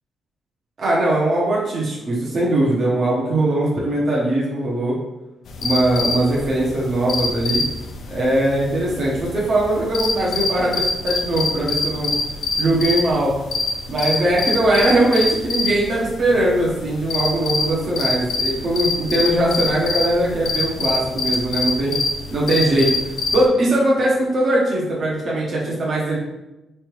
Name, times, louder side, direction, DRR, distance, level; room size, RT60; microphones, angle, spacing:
voice 1, 0.8-5.0 5.6-7.6 8.1-12.1 12.6-13.4 13.9-21.9 22.3-22.9 23.3-26.2, right 1 dB, 50° right, -5 dB, 0.9 m, -20 dB
sound 1, 5.5-23.4, left 3 dB, 65° left, 0.5 m, -25 dB
3.4 x 3.3 x 3.1 m, 1.0 s
cardioid pair, 100°, 0 cm